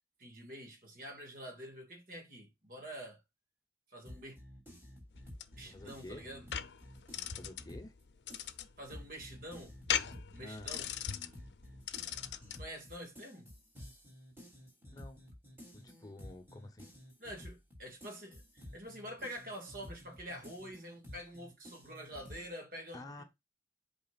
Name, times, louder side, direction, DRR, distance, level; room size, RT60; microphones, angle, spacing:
voice 1, 0.2-3.2 3.9-4.4 5.6-6.5 8.8-9.8 10.3-10.9 12.6-13.5 17.2-23.2, equal, 50° right, 2.0 m, -47 dB
sound 1, 4.1-8.0 8.3-22.5, left 1 dB, 15° right, 3.0 m, -52 dB
sound 2, 5.1-12.7, left 9 dB, 75° left, 0.6 m, -40 dB
voice 2, 5.6-6.3 7.3-7.9 10.4-10.7 14.9-15.2 15.7-16.9 22.9-23.2, left 2 dB, 20° left, 0.8 m, -49 dB
8.4 x 5.2 x 2.4 m
head